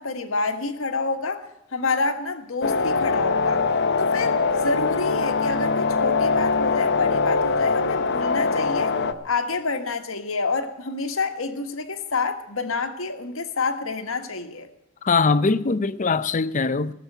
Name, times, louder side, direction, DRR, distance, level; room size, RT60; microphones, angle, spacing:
voice 1, 0.0-1.5 1.7-3.6 4.0-8.9 9.2-14.7, left 3 dB, 80° left, 1.5 m, -28 dB
sound 1, 2.6-9.1, left 4 dB, 55° left, 0.9 m, -22 dB
voice 2, 15.0-16.9, left 4 dB, 35° left, 0.5 m, -21 dB
17.5 x 7.2 x 9.1 m
head